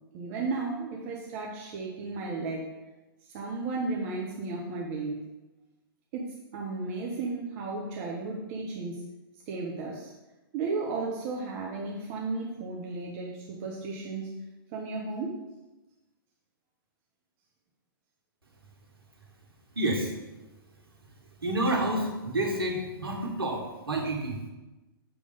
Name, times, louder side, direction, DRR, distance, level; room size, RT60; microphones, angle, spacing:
voice 1, 0.1-2.7 3.3-5.2 6.1-9.0 9.5-10.1 10.5-14.3 14.7-15.4, right 3 dB, 35° right, -2 dB, 1.0 m, -34 dB
voice 2, 19.7-20.1 21.4-24.5, right 1 dB, 75° right, 1 dB, 1.6 m, -29 dB
7.0 x 3.4 x 5.2 m, 1.1 s
figure-of-eight pair, 115°, 12 cm